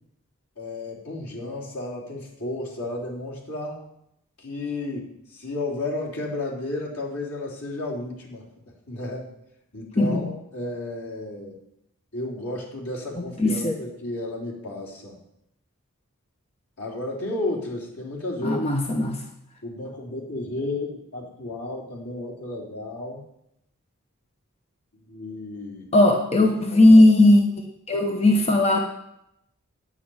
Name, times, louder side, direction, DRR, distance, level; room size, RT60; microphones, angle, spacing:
voice 1, 0.6-3.8 4.4-8.5 8.9-9.3 9.7-11.6 12.1-15.2 16.8-18.6 19.6-23.3 24.9-25.9 26.3-27.1, left 2 dB, 80° left, -4 dB, 3.6 m, -33 dB
voice 2, 13.4-13.7 18.4-19.2 25.9-27.4 27.9-28.8, left 1 dB, 30° left, 2 dB, 1.0 m, -17 dB
9.8 x 6.7 x 8.7 m, 0.80 s
head